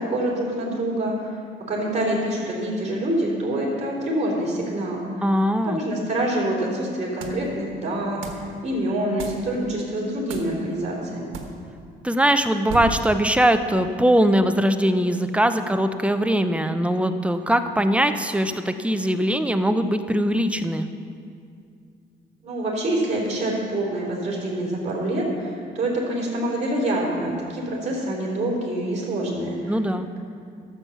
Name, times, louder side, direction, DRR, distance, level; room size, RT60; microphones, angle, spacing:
voice 1, 0.0-1.4 1.7-5.3 5.6-11.4 22.4-29.8, right 1 dB, 35° right, -4 dB, 3.4 m, -26 dB
voice 2, 5.2-5.8 12.0-20.9 29.7-30.1, equal, 5° right, 8 dB, 0.6 m, -21 dB
sound 1, 7.2-7.5 8.2-8.5 9.2-9.5 10.3-10.6 11.3-11.6 12.7-13.2, right 5 dB, 85° right, 1.2 m, -33 dB
12.0 x 7.2 x 6.9 m, 2.3 s
cardioid pair, 90°, 20 cm